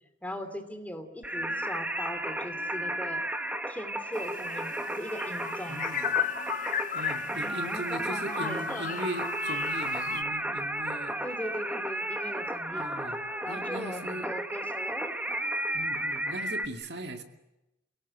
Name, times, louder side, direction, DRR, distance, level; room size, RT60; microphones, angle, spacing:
voice 1, 0.2-3.2 3.7-5.8 7.3-9.0 11.2-12.8 13.4-15.1, left 1 dB, 10° left, 7 dB, 2.7 m, -39 dB
Singing, 1.2-16.7, right 1 dB, 10° right, 1.4 m, -33 dB
sound 1, 4.1-10.2, left 9 dB, 45° left, 1.1 m, -35 dB
voice 2, 5.7-6.1 6.9-11.2 12.7-14.3 15.7-17.2, right 1 dB, 65° right, 4 dB, 2.3 m, -39 dB
29.5 x 18.0 x 10.0 m, 0.96 s
head